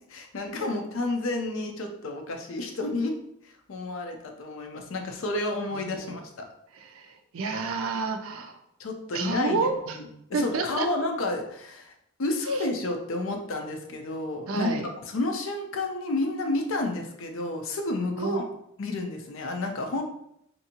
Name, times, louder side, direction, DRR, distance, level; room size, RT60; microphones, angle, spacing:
voice 1, 0.1-3.1 3.4-6.5 8.8-9.6 9.9-10.0 10.3-11.9 12.2-14.7 15.1-18.4 18.8-20.0, left 2 dB, 70° left, 4 dB, 0.5 m, -30 dB
voice 2, 5.7-6.2 6.7-8.6 9.1-10.0 10.3-10.9 12.5-12.6 14.5-14.9 16.8-16.9 18.2-18.4, right 4 dB, 80° right, 6 dB, 0.4 m, -30 dB
2.7 x 2.6 x 2.8 m, 0.75 s
head